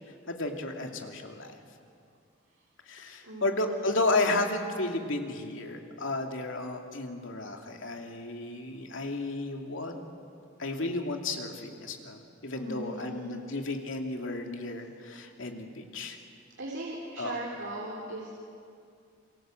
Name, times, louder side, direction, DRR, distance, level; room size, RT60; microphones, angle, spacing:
voice 1, 0.3-1.6 2.9-10.0 10.6-16.2 17.2-17.4, left 2 dB, 75° left, 3 dB, 2.6 m, -33 dB
voice 2, 3.2-3.6 3.9-4.1 12.5-13.4 16.6-18.3, right 1 dB, 70° right, -4 dB, 3.7 m, -38 dB
27.0 x 24.0 x 7.8 m, 2.4 s
head